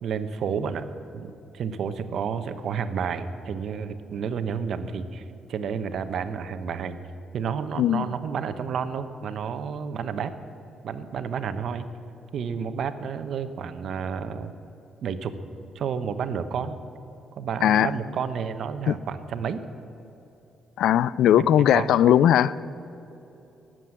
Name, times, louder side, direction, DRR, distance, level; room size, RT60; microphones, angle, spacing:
voice 1, 0.0-0.9 1.1-5.2 5.5-7.0 7.3-10.3 10.8-11.9 12.3-14.5 15.0-15.3 15.7-16.8 17.4-19.6 21.4-21.9, right 6 dB, 65° right, 10 dB, 0.9 m, -30 dB
voice 2, 20.8-22.5, left 10 dB, 80° left, 19 dB, 0.4 m, -19 dB
18.5 x 7.7 x 7.7 m, 3.0 s
cardioid pair, 90°, 0 cm